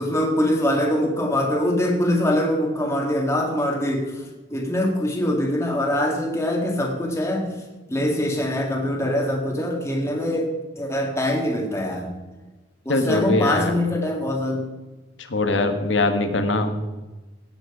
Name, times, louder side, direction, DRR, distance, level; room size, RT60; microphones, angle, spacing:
voice 1, 0.0-4.2 4.5-7.5 7.9-12.1 12.9-14.7, left 1 dB, 15° left, 0 dB, 1.8 m, -23 dB
voice 2, 12.9-13.7 15.2-16.8, left 2 dB, 85° left, 8 dB, 1.4 m, -22 dB
16.5 x 8.0 x 4.9 m, 1.2 s
head